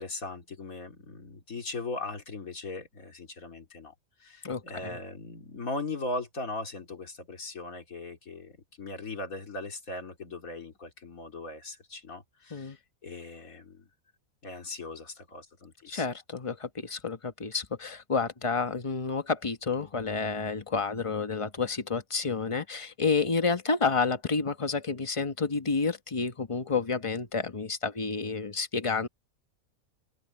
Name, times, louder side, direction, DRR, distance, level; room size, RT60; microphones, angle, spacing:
voice 1, 0.0-3.9 4.2-13.9 14.4-16.1, left 2 dB, 70° left, 3.2 m, -39 dB
voice 2, 4.4-5.0 12.5-12.8 15.9-29.1, left 4 dB, 25° left, 1.0 m, -30 dB
open air
omnidirectional pair, 1.5 m